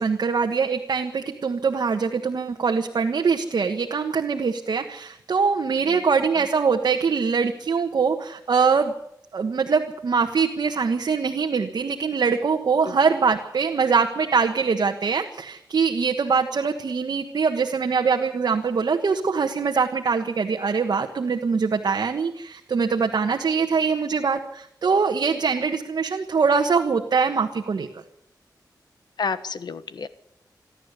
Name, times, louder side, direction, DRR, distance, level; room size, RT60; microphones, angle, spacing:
voice 1, 0.0-8.9 9.3-27.9, right 5 dB, 70° right, 3 dB, 1.4 m, -23 dB
voice 2, 29.2-30.1, left 5 dB, 75° left, 12 dB, 1.3 m, -30 dB
27.0 x 11.5 x 8.2 m, 0.75 s
wide cardioid pair, 100°, 7 cm